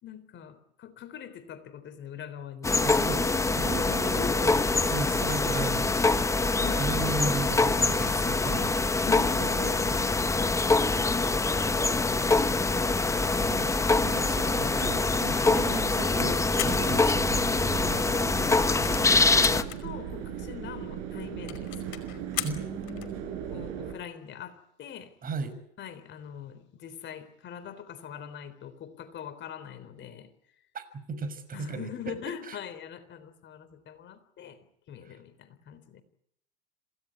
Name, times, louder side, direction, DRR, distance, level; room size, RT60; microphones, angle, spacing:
voice 1, 0.0-2.8 6.6-6.9 9.0-10.1 17.7-18.9 19.3-22.0 22.3-22.6 23.5-25.1 25.8-30.3 31.5-34.6 34.9-36.0, left 9 dB, 35° left, 12 dB, 3.8 m, -43 dB
sound 1, 2.6-19.6, left 3 dB, 10° left, 1.1 m, -25 dB
voice 2, 2.8-8.8 13.5-17.3 22.4-23.3 25.2-25.5 30.7-30.8 31.1-32.1 32.5-32.6 35.0-35.1, right 3 dB, 25° right, 11 dB, 6.1 m, -36 dB
sound 2, 9.4-10.5 11.0-11.1 11.6-23.9, right 9 dB, 50° right, 7.3 m, -41 dB
sound 3, 15.3-17.9 18.2-18.3 18.5-19.8 20.4-20.5 20.7-20.8 21.1-21.2 21.5-23.2, left 16 dB, 55° left, 5.4 m, -38 dB
27.0 x 17.5 x 9.8 m, 0.75 s
hypercardioid pair, 115°, 33 cm